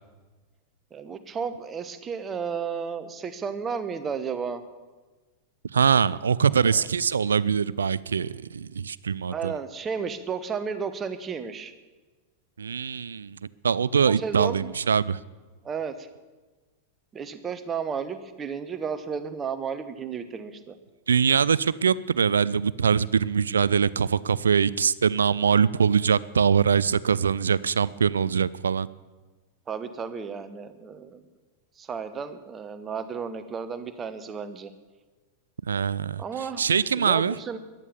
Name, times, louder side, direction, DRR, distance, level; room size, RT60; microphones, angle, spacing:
voice 1, 0.9-4.6 6.6-6.9 9.3-11.7 14.0-14.7 15.6-16.1 17.1-20.8 29.7-31.2 31.8-34.7 36.2-36.6 37.0-37.6, right 6 dB, 20° right, 11 dB, 1.1 m, -33 dB
voice 2, 5.7-9.6 12.6-13.4 13.6-15.2 21.1-28.9 35.7-37.4, right 6 dB, 70° right, 20 dB, 0.4 m, -23 dB
14.5 x 11.0 x 7.1 m, 1.3 s
figure-of-eight pair, 90°, 0 cm